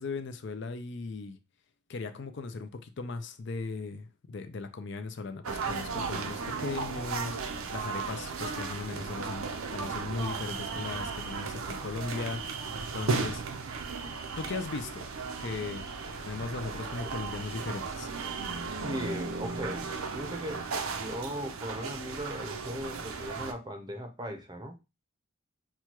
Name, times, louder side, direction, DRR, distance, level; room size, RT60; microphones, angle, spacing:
voice 1, 0.0-1.4 1.9-13.4 14.4-15.1 15.4-15.9 16.2-18.1, left 4 dB, 55° left, 0.4 m, -38 dB
sound 1, 5.4-23.5, right 4 dB, 80° right, 0.6 m, -35 dB
voice 2, 18.8-24.8, equal, 20° right, 0.6 m, -38 dB
6.0 x 2.3 x 2.9 m
head